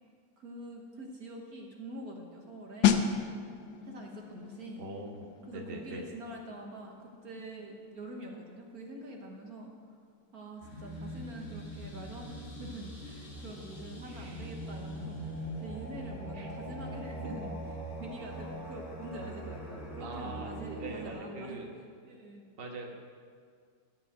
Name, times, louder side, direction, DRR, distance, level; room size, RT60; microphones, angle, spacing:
voice 1, 0.4-3.1 3.8-4.9 5.4-9.7 10.3-21.6 22.0-22.5, right 1 dB, 55° right, 1 dB, 1.5 m, -45 dB
sound 1, 2.8-13.3 13.6-13.9, left 8 dB, 80° left, 1.4 m, -35 dB
voice 2, 4.8-6.0 14.1-14.5 16.3-16.5 20.0-20.5 20.8-21.7 22.6-22.9, right 2 dB, 35° right, 1 dB, 1.3 m, -42 dB
sound 2, 10.6-21.1, right 1 dB, 40° left, 2.3 m, -42 dB
14.0 x 5.6 x 9.2 m, 2.1 s
omnidirectional pair, 2.0 m